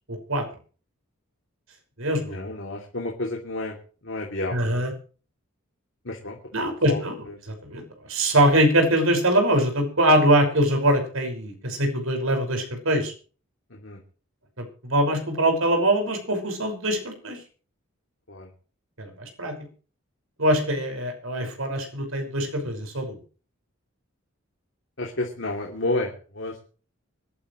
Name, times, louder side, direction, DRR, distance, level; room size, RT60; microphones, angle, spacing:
voice 1, 0.1-0.4 2.0-2.4 4.5-4.9 6.5-7.8 8.1-13.1 14.6-17.4 19.0-19.5 20.4-23.2, right 1 dB, 80° right, 4 dB, 5.8 m, -23 dB
voice 2, 2.3-3.8 4.0-4.8 6.0-7.0 7.3-7.4 13.7-14.0 18.3-18.5 22.6-22.7 25.0-26.6, left 2 dB, 65° left, 0 dB, 3.0 m, -31 dB
24.5 x 12.5 x 3.2 m, 0.39 s
head